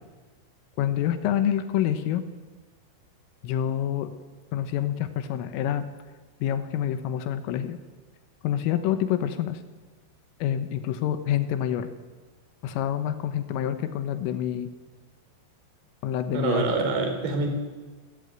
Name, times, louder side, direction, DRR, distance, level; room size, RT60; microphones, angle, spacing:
voice 1, 0.8-2.2 3.4-4.1 4.5-5.9 6.4-7.8 8.4-9.6 10.4-11.9 12.6-14.7 16.0-16.6, left 10 dB, 90° left, 10 dB, 3.7 m, -27 dB
voice 2, 16.3-17.5, right 4 dB, 60° right, 5 dB, 5.8 m, -25 dB
29.0 x 14.0 x 9.3 m, 1.3 s
omnidirectional pair, 5.8 m